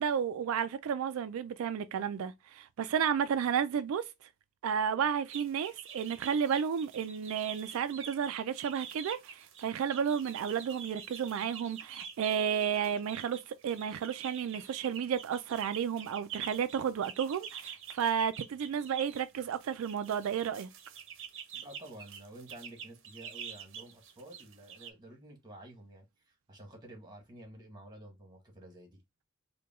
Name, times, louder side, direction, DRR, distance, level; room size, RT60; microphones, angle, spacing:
voice 1, 0.0-4.1 4.6-20.7, right 7 dB, 85° right, 0.3 m, -32 dB
sound 1, 5.3-24.9, right 8 dB, 65° right, 0.7 m, -46 dB
voice 2, 21.5-29.0, right 1 dB, 20° right, 1.4 m, -51 dB
4.7 x 2.2 x 3.5 m
head